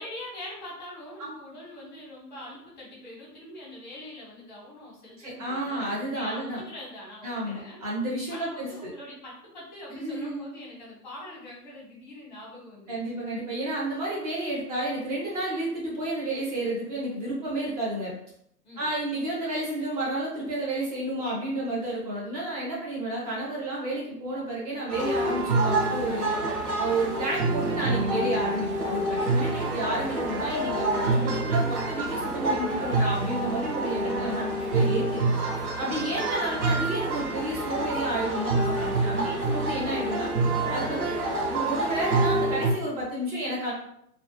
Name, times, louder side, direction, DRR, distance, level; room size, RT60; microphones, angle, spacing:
voice 1, 0.0-7.8 8.3-13.2 18.6-18.9, left 1 dB, 25° left, -4 dB, 0.7 m, -43 dB
voice 2, 5.2-6.6 7.2-8.9 9.9-10.5 12.9-18.1 18.8-26.4 26.8-35.3 35.6-40.3 40.7-41.2 41.5-43.7, right 1 dB, 25° right, -5 dB, 0.6 m, -31 dB
sound 1, 24.9-42.7, right 2 dB, 60° right, 0.7 m, -27 dB
2.3 x 2.1 x 2.9 m, 0.73 s
figure-of-eight pair, 125°, 49 cm